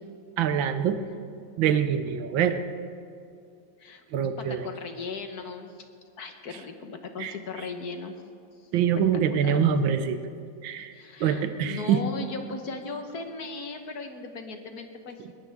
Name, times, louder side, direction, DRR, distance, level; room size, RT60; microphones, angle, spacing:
voice 1, 0.4-1.0 1.6-2.6 4.1-4.7 7.2-7.3 8.7-10.2 10.6-10.9 11.2-12.0, right 8 dB, 80° right, 10 dB, 1.5 m, -24 dB
voice 2, 4.4-5.8 6.2-8.2 8.6-8.7 9.1-9.7 10.9-15.2, left 4 dB, 55° left, 6 dB, 1.5 m, -38 dB
21.5 x 18.5 x 3.5 m, 2.4 s
omnidirectional pair, 2.1 m